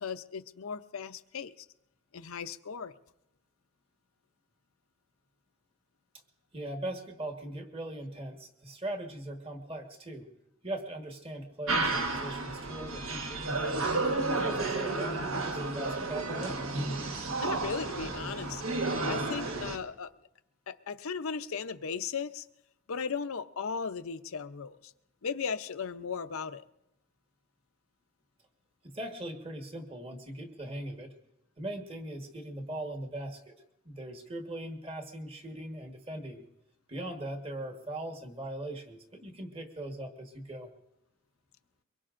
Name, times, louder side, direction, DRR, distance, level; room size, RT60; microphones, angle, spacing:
voice 1, 0.0-1.7 2.1-2.9 17.4-18.6 19.1-20.1 20.7-22.5 22.9-24.9 25.2-26.6, left 6 dB, 80° left, 12 dB, 0.6 m, -36 dB
voice 2, 6.5-10.2 10.6-13.9 14.3-16.6 28.8-31.1 31.6-33.6 33.8-36.4 36.9-40.7, right 1 dB, 25° right, 4 dB, 1.4 m, -40 dB
sound 1, 11.7-19.8, right 3 dB, 75° right, 1.4 m, -32 dB
23.5 x 21.5 x 2.5 m, 0.87 s
head